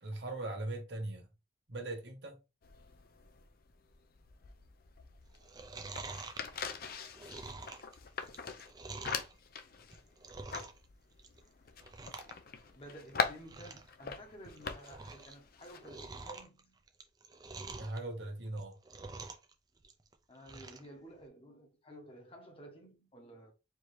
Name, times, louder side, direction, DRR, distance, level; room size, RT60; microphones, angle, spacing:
voice 1, 0.0-1.3 1.7-2.4 17.8-18.8, right 2 dB, 60° right, 1.1 m, -40 dB
sound 1, 2.6-16.4, left 5 dB, 50° left, 0.5 m, -42 dB
Chewing mastication, 5.3-9.3 9.8-10.8 11.1-11.5 11.8-12.3 12.6-12.7 13.1-13.2 13.4-13.9 14.3-15.3 15.6-18.0 18.5-19.5 19.8-20.9 21.2-21.3, right 3 dB, 20° right, 0.5 m, -47 dB
voice 2, 12.1-16.8 20.3-23.5, right 1 dB, 30° left, 1.0 m, -53 dB
4.6 x 2.8 x 3.2 m
head